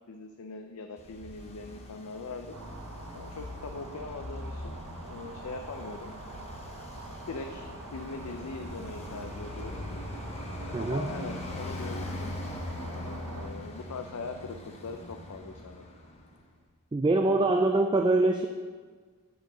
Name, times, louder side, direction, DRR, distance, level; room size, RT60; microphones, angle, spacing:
voice 1, 0.1-2.6 3.1-6.1 7.3-9.9 10.6-12.3 12.8-15.9, left 3 dB, 75° left, 5 dB, 0.5 m, -41 dB
Traffic noise roadway noise, 1.0-16.4, left 1 dB, 30° left, 0.8 m, -41 dB
sound 1, 2.5-13.5, right 2 dB, 85° right, 1.0 m, -44 dB
voice 2, 10.7-11.1 16.9-18.5, right 2 dB, 20° right, 5 dB, 0.3 m, -24 dB
7.6 x 4.7 x 6.5 m, 1.5 s
head